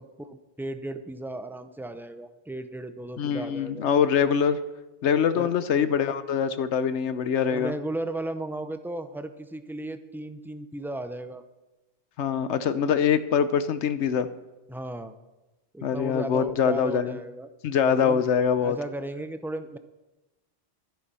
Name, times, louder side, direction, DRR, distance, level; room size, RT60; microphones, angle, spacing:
voice 1, 0.0-3.9 5.4-5.5 6.6-6.7 7.5-11.4 14.7-15.1 15.7-17.5 18.0-18.3 18.6-19.8, right 1 dB, 5° right, 9 dB, 0.4 m, -35 dB
voice 2, 3.2-4.6 5.0-7.7 12.2-14.3 15.8-17.2 17.6-18.8, left 7 dB, 80° left, 13 dB, 1.1 m, -24 dB
12.0 x 10.5 x 5.5 m, 1.0 s
omnidirectional pair, 1.2 m